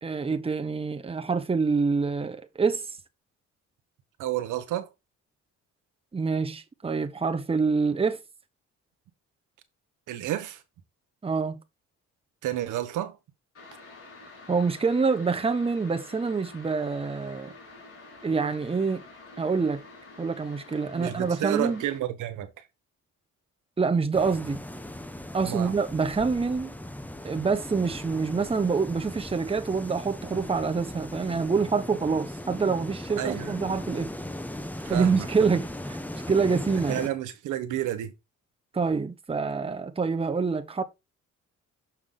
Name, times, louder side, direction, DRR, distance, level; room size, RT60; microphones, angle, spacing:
voice 1, 0.0-2.9 6.1-8.2 11.2-11.6 14.5-17.5 18.2-19.0 19.4-19.8 20.2-21.8 23.8-24.6 25.3-26.7 27.2-34.1 34.9-36.0 36.3-37.0 38.7-40.8, right 4 dB, 20° right, 0.9 m, -26 dB
voice 2, 4.2-4.9 10.1-10.6 12.4-13.2 20.9-22.5 25.4-25.8 33.2-33.5 34.8-35.3 36.9-38.1, right 12 dB, 85° right, 1.1 m, -30 dB
sound 1, 13.5-22.0, left 3 dB, 50° left, 4.0 m, -48 dB
sound 2, 24.1-37.1, left 1 dB, 5° left, 0.9 m, -38 dB
6.4 x 5.9 x 3.7 m
cardioid pair, 90°, 30 cm